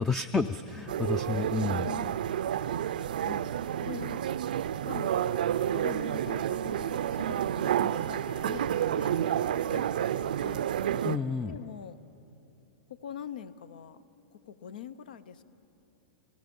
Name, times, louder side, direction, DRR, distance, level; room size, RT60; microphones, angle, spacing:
voice 1, 0.0-1.9 11.0-11.6, left 4 dB, 10° left, 11 dB, 0.4 m, -30 dB
voice 2, 0.9-1.5 1.8-2.2 3.2-3.5 3.8-4.2 4.8-10.7 11.4-12.0 12.9-14.0 14.3-15.4, left 9 dB, 85° left, 15 dB, 0.8 m, -44 dB
sound 1, 0.9-11.2, right 10 dB, 85° right, 0.5 m, -30 dB
28.5 x 19.0 x 5.4 m, 2.9 s
supercardioid pair, 155°, 5 cm